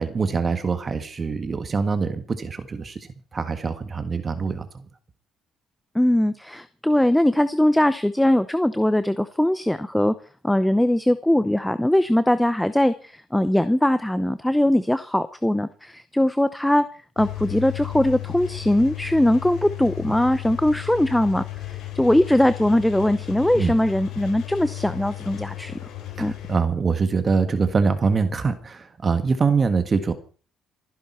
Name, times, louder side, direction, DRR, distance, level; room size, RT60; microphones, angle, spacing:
voice 1, 0.0-4.8 23.5-23.7 26.2-30.1, right 5 dB, 30° right, 9 dB, 1.6 m, -24 dB
voice 2, 5.9-10.1 10.4-16.8 17.2-25.7 26.2-26.3, left 1 dB, 5° left, 13 dB, 0.8 m, -21 dB
Engine, 17.2-26.6, left 15 dB, 80° left, 4.6 m, -34 dB
28.0 x 10.5 x 4.5 m, 0.40 s
cardioid pair, 110°, 0 cm